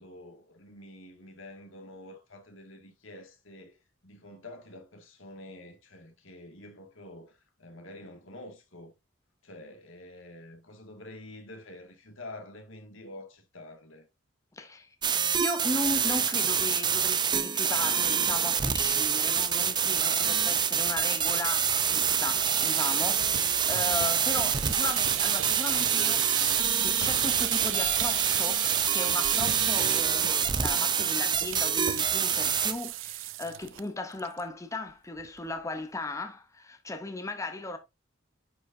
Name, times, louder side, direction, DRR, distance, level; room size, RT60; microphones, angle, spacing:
voice 1, 0.0-3.8 4.0-8.9 9.4-14.1, left 1 dB, 80° left, 2.0 m, -47 dB
voice 2, 14.5-14.9 15.4-26.3 26.5-37.8, left 2 dB, 15° left, 0.7 m, -36 dB
sound 1, 15.0-32.7, right 7 dB, 25° right, 0.5 m, -26 dB
sound 2, 18.9-31.4, left 2 dB, 35° left, 2.7 m, -53 dB
sound 3, 22.2-33.8 34.1-34.4 34.7-34.8 35.2-35.6, right 15 dB, 65° right, 0.3 m, -35 dB
9.4 x 5.2 x 2.6 m
head